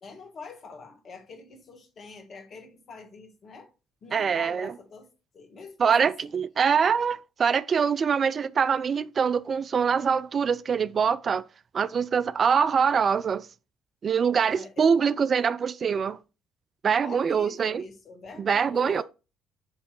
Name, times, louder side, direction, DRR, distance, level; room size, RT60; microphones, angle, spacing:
voice 1, 0.0-3.7 4.0-6.3 14.5-15.2 17.0-19.0, left 4 dB, 50° left, 1.6 m, -45 dB
voice 2, 4.1-4.7 5.8-11.4 11.7-13.5 14.0-16.2 16.8-17.8 18.4-19.0, right 6 dB, 45° right, 0.3 m, -24 dB
7.4 x 3.3 x 4.6 m
hypercardioid pair, 50°, 0 cm